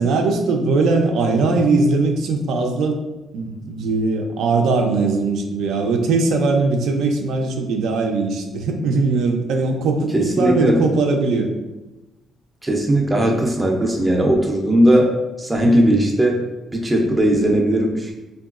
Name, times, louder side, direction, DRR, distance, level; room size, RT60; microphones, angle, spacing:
voice 1, 0.0-3.0 3.3-11.5 15.6-15.9, right 3 dB, 85° right, 3 dB, 0.4 m, -20 dB
voice 2, 10.1-10.8 12.6-15.1 15.4-16.4 16.7-18.1, right 1 dB, 10° right, 0 dB, 0.4 m, -17 dB
3.6 x 2.3 x 2.3 m, 1.1 s
cardioid pair, 155°, 0 cm